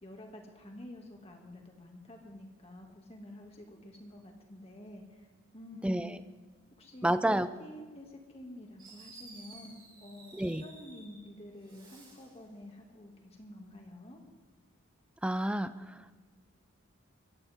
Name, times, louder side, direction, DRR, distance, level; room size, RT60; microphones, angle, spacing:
voice 1, 0.0-5.3 5.5-6.0 6.8-14.2, left 1 dB, 30° left, 1 dB, 2.4 m, -49 dB
voice 2, 5.8-6.2 7.0-7.5 10.3-10.6 15.2-16.0, right 1 dB, 5° right, 12 dB, 0.5 m, -30 dB
Fireworks, 8.8-11.2 11.6-12.4, right 3 dB, 25° right, 5.9 m, -54 dB
23.5 x 15.5 x 3.7 m, 1.4 s
head